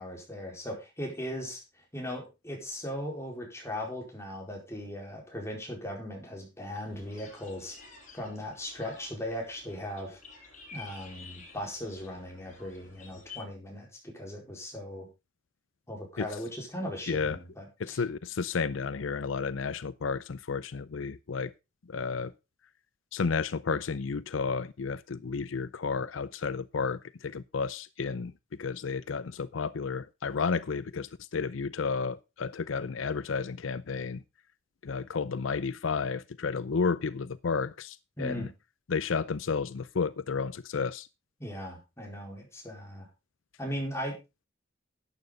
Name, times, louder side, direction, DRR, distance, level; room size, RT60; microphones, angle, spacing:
voice 1, 0.0-1.6 1.9-7.8 8.1-10.2 10.7-15.1 15.9-18.0 38.2-38.5 41.4-43.1 43.6-44.2, equal, 15° left, 4.4 m, -38 dB
sound 1, 6.7-13.4, left 4 dB, 40° left, 6.6 m, -51 dB
voice 2, 17.1-17.4 17.8-21.5 21.9-22.3 23.1-28.3 28.6-34.2 34.8-38.5 38.9-41.1, left 5 dB, 85° left, 0.6 m, -32 dB
12.0 x 9.2 x 3.9 m
head